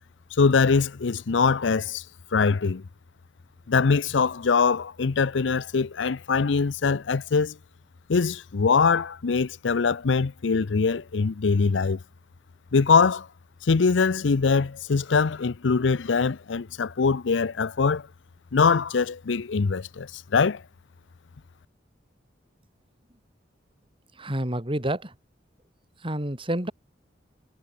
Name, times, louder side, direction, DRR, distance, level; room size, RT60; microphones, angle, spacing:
voice 1, 0.4-2.0 2.3-2.8 3.7-7.6 8.1-12.0 12.7-13.3 13.6-18.1 18.5-20.6, left 5 dB, 80° left, 0.6 m, -23 dB
voice 2, 24.2-25.1 26.0-26.7, right 1 dB, 30° right, 4.4 m, -28 dB
head